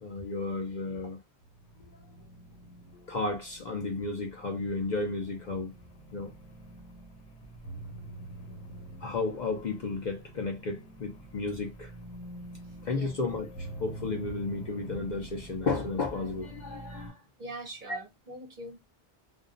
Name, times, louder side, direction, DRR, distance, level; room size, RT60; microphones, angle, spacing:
voice 1, 0.0-1.2 1.9-2.0 3.1-5.7 6.1-6.3 9.0-11.9 12.8-17.2 17.9-18.0, left 3 dB, 55° left, 0.5 m, -33 dB
sound 1, 1.4-17.1, right 1 dB, 85° left, 1.0 m, -46 dB
voice 2, 12.7-13.1 17.4-18.9, right 1 dB, 55° right, 0.7 m, -43 dB
2.5 x 2.2 x 2.4 m
omnidirectional pair, 1.1 m